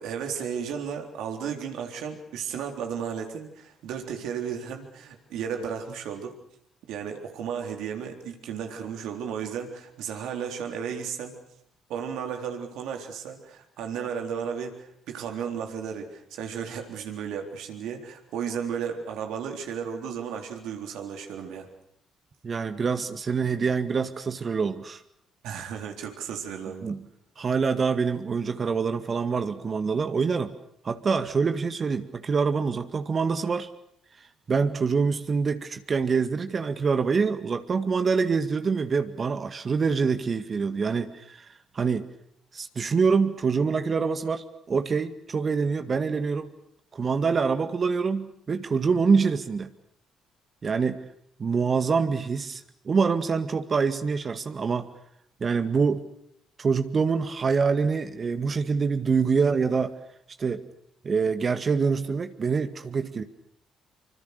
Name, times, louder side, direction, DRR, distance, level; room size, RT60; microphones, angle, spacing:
voice 1, 0.0-6.4 6.9-11.4 11.9-21.7 25.4-26.9, right 7 dB, 70° right, 4 dB, 3.8 m, -34 dB
voice 2, 22.4-25.0 26.8-27.0 27.4-30.5 30.8-33.7 34.5-41.5 41.7-42.1 42.5-46.5 46.9-49.7 50.6-51.0 51.4-54.9 55.4-56.0 56.6-59.9 60.4-60.6 61.0-63.2, right 5 dB, 45° right, 9 dB, 1.9 m, -25 dB
25.5 x 24.5 x 6.8 m, 0.71 s
hypercardioid pair, 50°, 0 cm